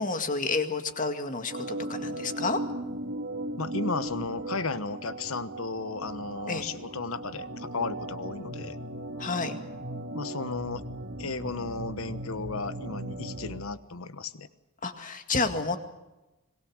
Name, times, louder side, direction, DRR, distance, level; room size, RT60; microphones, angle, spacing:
voice 1, 0.0-2.6 6.5-6.7 9.2-9.5 14.8-15.8, left 3 dB, 40° left, 7 dB, 2.1 m, -30 dB
Organ, 1.5-13.6, right 1 dB, 60° right, 2.0 m, -37 dB
voice 2, 3.6-8.8 10.1-10.8 11.2-14.5, left 3 dB, 75° left, 13 dB, 1.2 m, -34 dB
26.0 x 20.5 x 6.4 m, 1.0 s
head